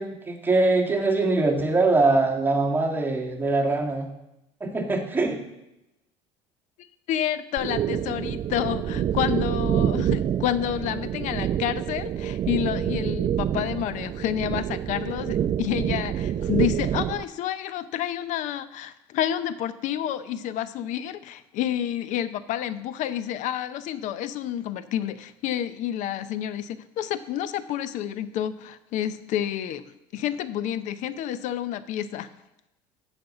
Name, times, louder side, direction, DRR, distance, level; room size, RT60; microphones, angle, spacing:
voice 1, 0.0-4.1 4.6-5.4, right 3 dB, 15° right, 0 dB, 1.7 m, -23 dB
voice 2, 7.1-32.3, left 11 dB, 60° left, 14 dB, 0.6 m, -29 dB
sound 1, 7.6-17.2, right 10 dB, 40° right, 0.4 m, -27 dB
7.6 x 5.4 x 7.1 m, 0.91 s
supercardioid pair, 85°, 14 cm